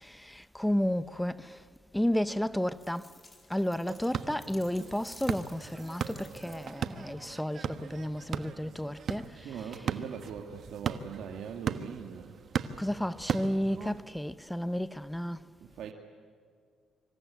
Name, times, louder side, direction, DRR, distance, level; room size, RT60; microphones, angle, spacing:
voice 1, 0.0-1.6 1.9-3.1 3.5-9.6 12.8-15.4, equal, 5° left, 0.9 m, -32 dB
sound 1, 2.7-6.9, left 2 dB, 20° left, 4.0 m, -55 dB
sound 2, 3.9-14.0, right 7 dB, 55° right, 1.3 m, -38 dB
voice 2, 9.3-12.3 15.6-15.9, right 7 dB, 70° right, 2.3 m, -41 dB
26.0 x 25.5 x 8.5 m
cardioid pair, 85°, 0 cm